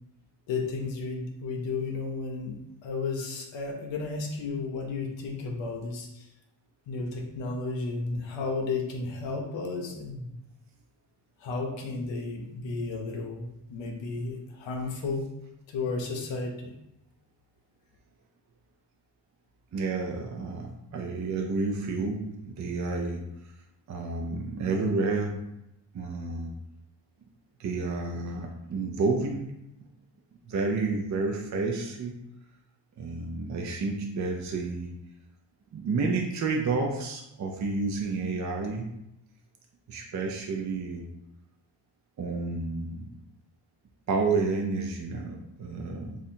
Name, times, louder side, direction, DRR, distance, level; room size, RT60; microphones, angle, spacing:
voice 1, 0.5-6.2 6.9-10.3 11.4-15.2 15.7-16.5, left 3 dB, 90° left, 1 dB, 0.6 m, -33 dB
voice 2, 19.7-23.2 23.9-25.4 25.9-26.5 27.6-29.5 30.5-32.1 33.0-34.9 35.7-38.9 39.9-41.1 42.2-43.1 44.1-46.2, right 3 dB, 40° right, 1 dB, 0.5 m, -30 dB
2.7 x 2.5 x 4.2 m, 0.84 s
cardioid pair, 100°, 43 cm